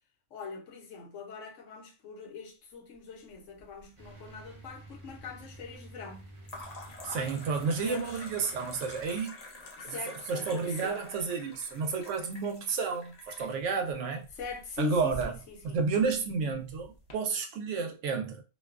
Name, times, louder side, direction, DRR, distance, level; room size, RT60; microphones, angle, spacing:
voice 1, 0.3-6.3 7.8-8.2 9.8-11.1 14.4-15.9, left 6 dB, 75° left, 1.0 m, -42 dB
sound 1, 3.3-4.1 4.4-5.0 6.4-17.1, left 2 dB, 45° left, 0.5 m, -48 dB
sound 2, 4.0-9.2, right 2 dB, 35° right, 0.6 m, -51 dB
voice 2, 7.0-9.4 9.8-10.0 10.3-14.3 14.8-15.3 15.6-18.4, right 5 dB, 75° right, 0.9 m, -31 dB
2.5 x 2.2 x 2.3 m
omnidirectional pair, 1.3 m